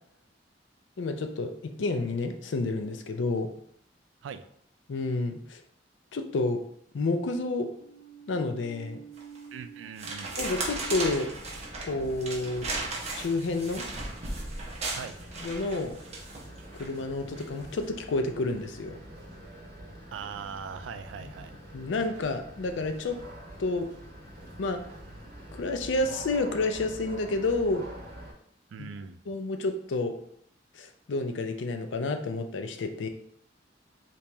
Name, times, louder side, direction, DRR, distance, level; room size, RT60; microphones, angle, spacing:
voice 1, 1.0-3.5 4.9-5.6 6.1-6.6 6.9-7.7 8.3-9.0 10.4-11.3 11.8-12.7 13.1-13.8 15.4-16.0 16.8-18.9 21.2-21.3 21.7-23.2 23.6-23.9 24.6-24.8 25.5-27.9 28.8-28.9 29.3-30.1 30.8-33.1, left 2 dB, 75° left, 6 dB, 0.4 m, -30 dB
sound 1, 7.8-14.2, right 6 dB, 10° right, 1.1 m, -51 dB
sound 2, 9.2-9.5 10.0-16.9 17.4-17.6, right 2 dB, 35° right, 0.8 m, -36 dB
voice 2, 9.5-10.4 14.9-15.2 20.1-21.6 28.7-29.2, right 6 dB, 80° right, 11 dB, 0.3 m, -40 dB
sound 3, 10.4-28.3, equal, 55° right, 1.1 m, -46 dB
2.9 x 2.9 x 3.3 m, 0.67 s
head